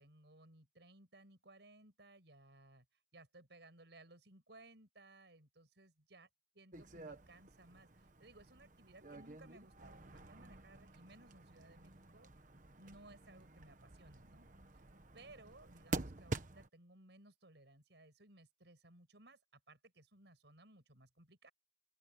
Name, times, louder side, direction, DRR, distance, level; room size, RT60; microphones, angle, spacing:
voice 1, 0.0-2.9 3.1-6.3 6.5-12.3 12.8-14.5 14.7-14.8 15.1-21.5, right 2 dB, 75° right, 5.7 m, -61 dB
sound 1, 6.7-16.7, right 2 dB, 45° right, 1.3 m, -48 dB
open air
head